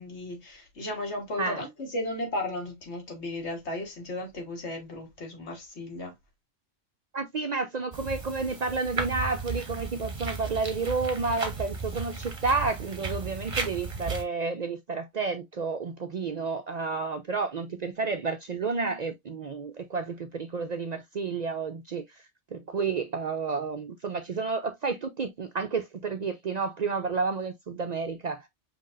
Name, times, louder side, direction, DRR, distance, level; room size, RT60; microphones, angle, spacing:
voice 1, 0.0-6.1, left 1 dB, 65° left, 1.8 m, -35 dB
voice 2, 7.1-28.5, right 4 dB, 55° right, 0.4 m, -31 dB
sound 1, 7.9-14.2, right 4 dB, 30° right, 0.9 m, -35 dB
5.6 x 2.9 x 2.5 m
omnidirectional pair, 1.2 m